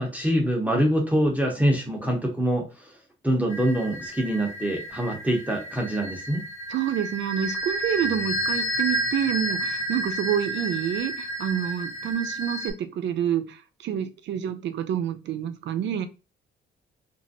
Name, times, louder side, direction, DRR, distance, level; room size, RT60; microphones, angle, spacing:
voice 1, 0.0-3.0 3.2-6.4 8.0-8.2, right 1 dB, 5° right, -1 dB, 0.9 m, -25 dB
sound 1, 3.5-12.7, right 1 dB, 75° left, 0.9 m, -31 dB
voice 2, 6.7-16.1, right 9 dB, 65° right, 9 dB, 0.5 m, -28 dB
2.9 x 2.6 x 2.7 m, 0.30 s
cardioid pair, 90°, 20 cm